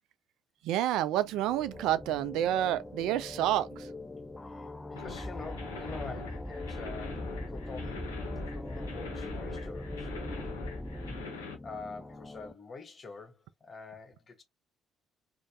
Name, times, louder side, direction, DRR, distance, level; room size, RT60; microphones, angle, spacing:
voice 1, 0.6-3.9, right 12 dB, 60° right, 0.3 m, -29 dB
sound 1, 0.9-12.5, left 2 dB, 15° left, 0.4 m, -44 dB
voice 2, 4.4-8.1 8.5-10.5 11.6-14.4, left 4 dB, 35° left, 0.9 m, -46 dB
sound 2, 5.0-11.5, left 4 dB, 75° left, 0.6 m, -44 dB
sound 3, 5.0-11.2, left 1 dB, ahead, 1.0 m, -40 dB
3.1 x 2.1 x 2.6 m
figure-of-eight pair, 50°, 0 cm